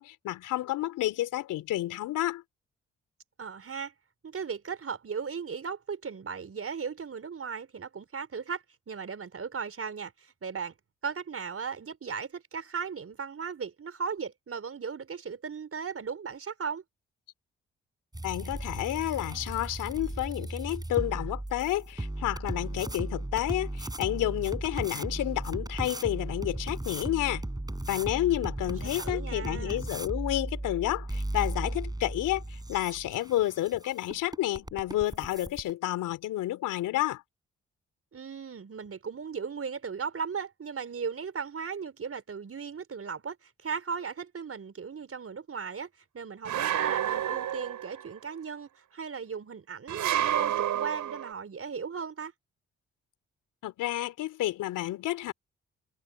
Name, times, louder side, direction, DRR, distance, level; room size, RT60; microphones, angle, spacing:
voice 1, 0.0-2.4 18.2-27.4 27.9-37.2 53.6-55.3, left 14 dB, 75° left, 3.5 m, -30 dB
voice 2, 3.4-3.9 4.2-10.7 11.0-16.8 28.6-29.8 38.1-45.9 46.1-52.3, right 6 dB, 45° right, 4.9 m, -37 dB
sound 1, 18.1-35.7, right 1 dB, 10° right, 4.4 m, -36 dB
sound 2, 46.5-48.1 49.9-51.3, right 11 dB, 70° right, 5.7 m, -29 dB
hypercardioid pair, 45°, 32 cm